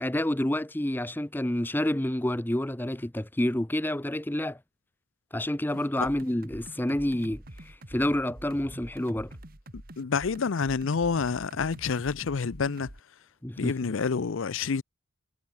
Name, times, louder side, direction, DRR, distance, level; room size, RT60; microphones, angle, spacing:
voice 1, 0.0-4.6 5.3-9.3 13.4-13.9, left 1 dB, 10° left, 0.7 m, -29 dB
sound 1, 5.7-13.0, right 1 dB, 45° right, 2.4 m, -46 dB
voice 2, 10.0-12.9 13.6-14.8, left 5 dB, 70° left, 0.5 m, -28 dB
head